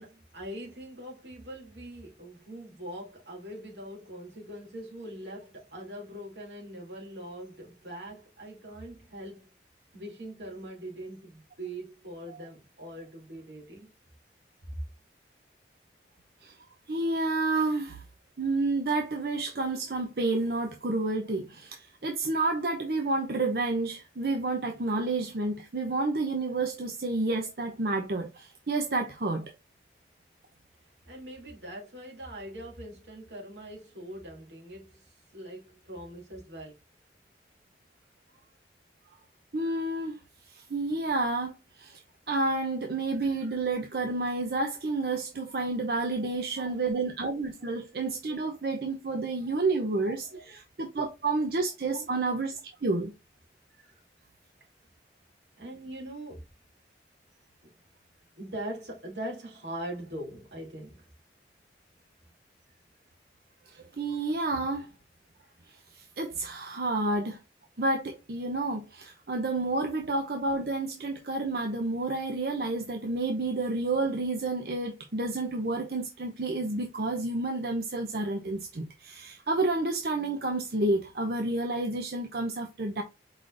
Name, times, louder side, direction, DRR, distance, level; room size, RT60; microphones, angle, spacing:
voice 1, 0.0-9.5 9.9-13.9 31.1-35.0 35.3-36.8 46.2-46.8 47.6-47.7 50.3-50.4 51.9-52.1 55.6-56.4 57.6-57.7 58.4-61.0, right 1 dB, 85° right, 2.5 m, -42 dB
voice 2, 16.9-18.0 18.4-29.5 39.5-40.2 40.5-42.0 42.3-53.1 63.7-64.9 65.7-67.4 67.8-83.0, right 2 dB, 60° right, 0.6 m, -30 dB
5.0 x 3.8 x 2.4 m
head